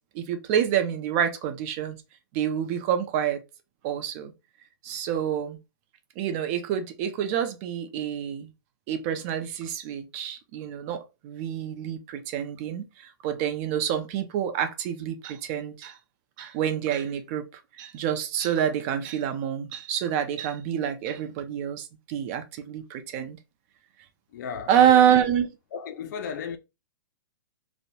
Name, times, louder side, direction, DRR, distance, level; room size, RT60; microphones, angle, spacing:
voice 1, 0.1-2.0 2.3-3.4 3.8-4.3 4.8-5.6 6.2-8.5 8.9-16.0 16.4-23.4 24.7-25.5, right 9 dB, 35° right, 0.5 m, -27 dB
voice 2, 24.3-25.0 25.7-26.6, left 7 dB, 55° left, 0.4 m, -35 dB
2.7 x 2.0 x 2.7 m
hypercardioid pair, 135°, 11 cm